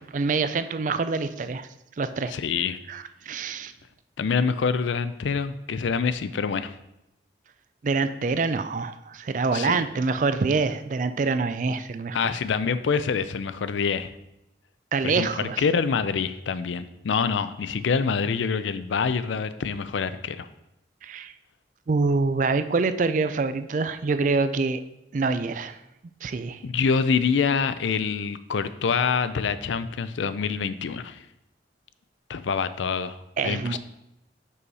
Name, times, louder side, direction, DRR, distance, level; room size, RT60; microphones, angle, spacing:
voice 1, 0.1-1.7 2.0-2.3 2.9-3.7 7.8-12.2 14.9-15.6 21.0-21.3 21.9-24.8 25.1-25.8 26.2-26.6 33.4-33.8, right 4 dB, 45° right, 11 dB, 0.3 m, -25 dB
voice 2, 2.3-2.8 4.2-6.7 9.5-9.8 12.1-14.1 15.0-20.5 26.6-31.2 32.3-33.2 33.4-33.8, left 5 dB, 80° left, 13 dB, 0.4 m, -26 dB
6.2 x 5.5 x 4.1 m, 0.87 s
head